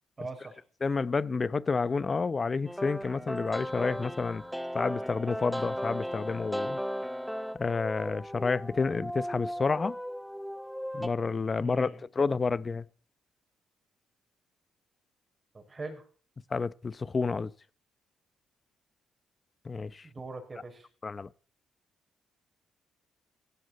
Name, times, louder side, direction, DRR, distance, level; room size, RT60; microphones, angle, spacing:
voice 1, 0.2-0.6 11.6-12.0 15.5-16.0 20.1-20.9, right 3 dB, 30° right, 6.5 m, -41 dB
voice 2, 0.8-4.4 4.7-6.8 7.6-10.0 10.9-11.9 12.2-12.9 16.5-17.5 19.6-20.1 21.0-21.3, left 4 dB, 30° left, 0.8 m, -29 dB
sound 1, 2.7-11.1, equal, ahead, 0.9 m, -36 dB
17.5 x 16.5 x 4.3 m
cardioid pair, 90°, 0 cm